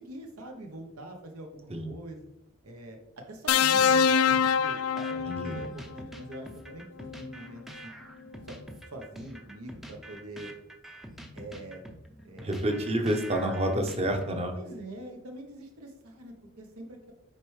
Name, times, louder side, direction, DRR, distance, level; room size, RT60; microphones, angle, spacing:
voice 1, 0.0-2.3 2.6-7.9 8.5-8.6 8.9-10.5 11.3-11.8 12.2-12.6 13.0-13.1 14.5-17.1, right 1 dB, 85° right, 3 dB, 0.9 m, -44 dB
sound 1, 3.5-5.7 7.1-7.3, left 7 dB, 85° left, 0.3 m, -24 dB
sound 2, 3.8-14.6, right 1 dB, ahead, 0.4 m, -46 dB
voice 2, 5.3-5.6 12.4-14.5, right 1 dB, 30° right, 5 dB, 0.8 m, -28 dB
6.5 x 4.5 x 3.2 m, 0.83 s
head